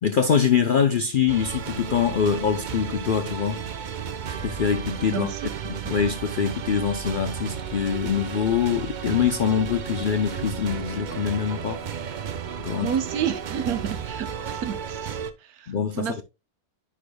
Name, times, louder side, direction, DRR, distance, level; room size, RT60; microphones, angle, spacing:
voice 1, 0.0-3.7 4.4-5.3 5.6-11.8 12.6-12.9 15.7-16.2, left 7 dB, 65° left, 0.5 m, -24 dB
sound 1, 1.3-15.3, right 7 dB, 65° right, 0.4 m, -33 dB
voice 2, 5.1-5.4 12.8-16.2, right 8 dB, 80° right, 1.3 m, -30 dB
10.0 x 5.1 x 2.2 m
omnidirectional pair, 1.6 m